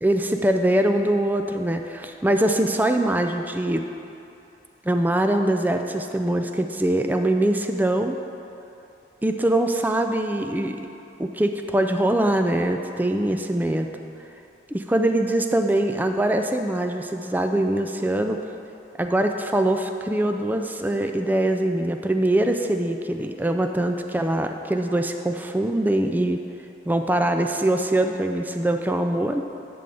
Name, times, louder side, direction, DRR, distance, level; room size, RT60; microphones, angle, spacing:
voice 1, 0.0-3.8 4.8-8.2 9.2-10.8 11.2-13.9 14.7-18.4 19.0-26.4 26.9-29.4, right 1 dB, 10° right, 5 dB, 0.4 m, -23 dB
11.0 x 3.9 x 6.9 m, 2.8 s
head